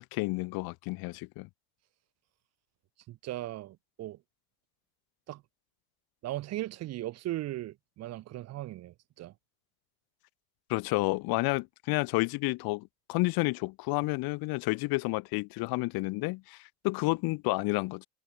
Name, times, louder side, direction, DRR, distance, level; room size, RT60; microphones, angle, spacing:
voice 1, 0.0-1.5 10.7-18.1, left 24 dB, 80° left, 0.5 m, -30 dB
voice 2, 3.1-4.2 5.3-5.4 6.2-9.3, right 15 dB, 45° right, 0.6 m, -38 dB
cardioid pair, 170°, 36 cm